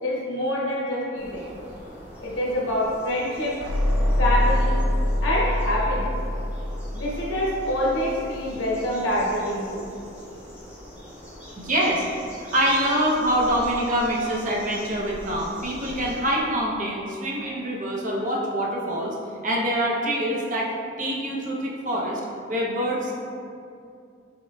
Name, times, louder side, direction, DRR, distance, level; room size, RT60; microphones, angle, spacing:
voice 1, 0.0-1.5 2.2-3.5 4.2-4.8 5.2-6.1 6.9-9.8, left 1 dB, 85° left, -5 dB, 1.1 m, -26 dB
sound 1, 1.1-16.4, equal, 5° right, 1.1 m, -43 dB
sound 2, 3.6-8.3, left 1 dB, 85° right, 0.6 m, -25 dB
voice 2, 11.6-12.0 12.5-19.1 19.4-20.7 21.0-22.2 22.5-23.1, equal, 40° right, -3 dB, 0.6 m, -25 dB
5.7 x 3.4 x 2.2 m, 2.4 s
head